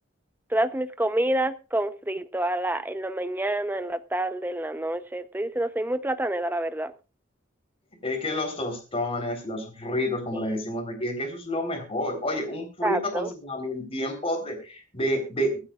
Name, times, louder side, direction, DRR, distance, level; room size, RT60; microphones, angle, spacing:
voice 1, 0.5-6.9 10.3-10.6 12.8-13.3, right 1 dB, 10° right, 0.8 m, -28 dB
voice 2, 8.0-15.6, left 1 dB, 30° left, 4.1 m, -29 dB
24.5 x 9.7 x 2.5 m
head